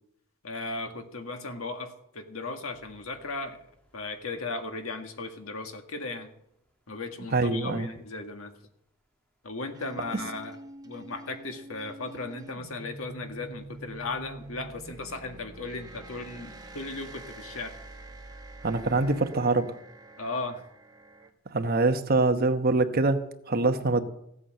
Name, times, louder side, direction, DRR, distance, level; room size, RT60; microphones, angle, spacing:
voice 1, 0.4-3.6 3.9-6.3 6.9-8.5 9.4-10.6 10.8-17.7 20.2-20.6, left 3 dB, 75° left, 5 dB, 1.8 m, -36 dB
sound 1, 2.7-4.3 12.9-19.0, right 2 dB, 5° left, 1.8 m, -52 dB
voice 2, 7.3-7.9 18.6-19.7 21.5-24.0, right 3 dB, 45° right, 8 dB, 1.0 m, -24 dB
sound 2, 9.7-21.3, right 1 dB, 20° right, 1.4 m, -47 dB
15.5 x 8.4 x 7.6 m, 0.78 s
head